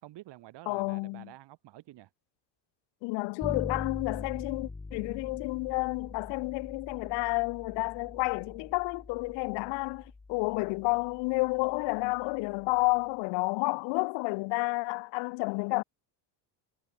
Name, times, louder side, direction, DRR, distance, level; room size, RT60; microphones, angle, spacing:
voice 1, 0.0-2.1, right 16 dB, 65° right, 4.1 m, -49 dB
voice 2, 0.7-1.3 3.0-15.8, left 28 dB, 70° left, 0.5 m, -30 dB
Bass guitar, 3.4-13.1, left 3 dB, 10° left, 1.0 m, -44 dB
cardioid pair, 115°, 45 cm